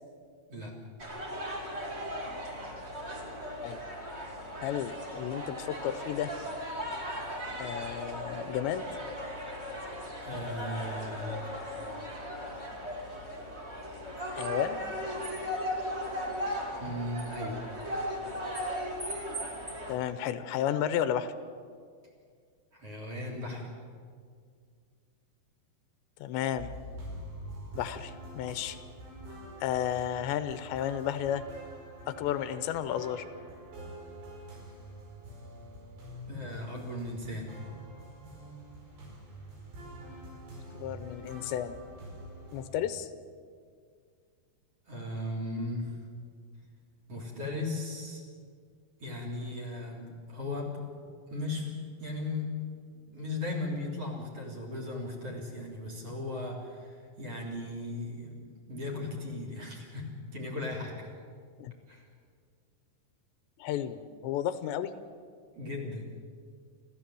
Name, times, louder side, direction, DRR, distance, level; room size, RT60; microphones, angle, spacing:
sound 1, 1.0-19.9, equal, 20° right, 2.3 m, -37 dB
voice 1, 4.6-6.3 7.6-8.9 14.3-14.8 19.9-21.3 26.2-26.7 27.7-28.8 29.6-31.4 32.2-33.2 40.7-41.8 42.5-43.1 61.6-61.7 63.6-64.9, left 10 dB, 85° left, 12 dB, 3.1 m, -32 dB
voice 2, 10.2-11.4 16.8-17.6 22.7-23.7 36.3-37.5 44.9-46.0 47.1-48.2 49.0-50.8 51.3-51.7 52.0-52.5 53.1-61.0 61.9-62.1 65.6-66.0, left 2 dB, 35° right, 2 dB, 3.9 m, -37 dB
sound 2, 26.6-42.6, right 1 dB, 75° right, 7.4 m, -46 dB
29.0 x 14.0 x 7.7 m, 2.1 s
omnidirectional pair, 5.1 m